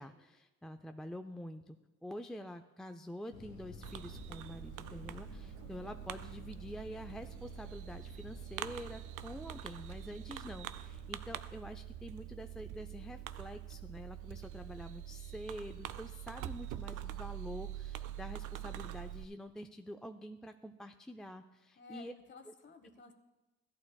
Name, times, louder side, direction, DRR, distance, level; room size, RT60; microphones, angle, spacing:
voice 1, 0.0-1.8 2.0-22.1 22.5-22.6, equal, ahead, 6 dB, 0.4 m, -47 dB
sound 1, 3.3-11.4, left 3 dB, 80° left, 2.2 m, -53 dB
Fireworks, 3.8-19.2, right 12 dB, 80° right, 0.5 m, -45 dB
voice 2, 21.8-23.1, left 4 dB, 35° left, 7 dB, 1.2 m, -54 dB
15.0 x 11.0 x 2.3 m, 1.1 s
cardioid pair, 90°, 30 cm